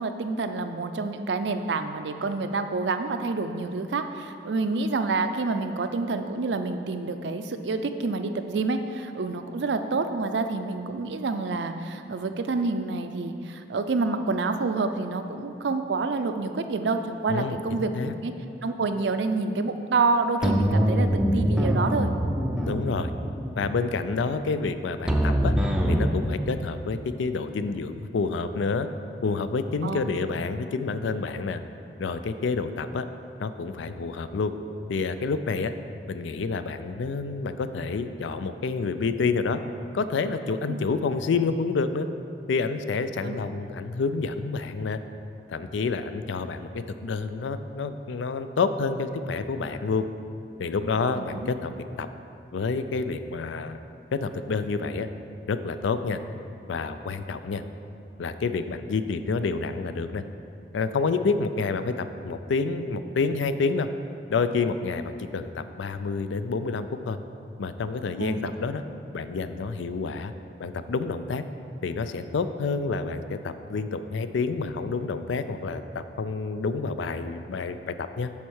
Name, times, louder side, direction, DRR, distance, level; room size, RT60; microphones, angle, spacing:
voice 1, 0.0-18.3 18.6-22.1 29.8-30.0 40.7-40.8 43.2-43.4 51.2-51.5 68.2-68.5, right 3 dB, 75° right, 8 dB, 0.5 m, -28 dB
sound 1, 20.4-26.1, equal, 5° right, 0.4 m, -24 dB
voice 2, 22.6-23.1 23.6-25.5 25.9-28.9 29.2-31.6 32.0-33.1 33.4-34.5 34.9-35.7 36.1-39.6 39.9-42.1 42.5-45.0 45.5-50.1 50.6-51.7 52.0-52.1 52.5-53.8 54.1-55.1 55.5-56.2 56.7-57.6 58.2-60.2 60.7-63.9 64.3-67.2 67.6-68.8 69.1-70.3 70.6-71.4 71.8-78.3, left 4 dB, 90° left, 10 dB, 0.4 m, -28 dB
7.2 x 4.5 x 6.3 m, 2.6 s
head